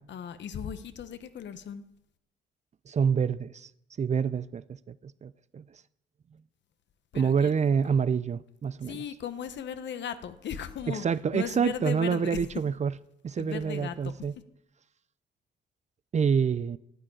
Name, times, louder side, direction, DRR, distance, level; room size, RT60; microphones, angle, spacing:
voice 1, 0.1-1.8 7.1-7.6 8.9-11.1 11.3-12.4 13.4-14.1, left 8 dB, 65° left, 1.1 m, -37 dB
voice 2, 2.9-3.7 4.0-5.8 7.1-9.0 10.9-13.0 13.2-14.4 16.1-16.8, right 6 dB, 35° right, 0.5 m, -27 dB
10.5 x 9.0 x 8.8 m
cardioid pair, 90°, 20 cm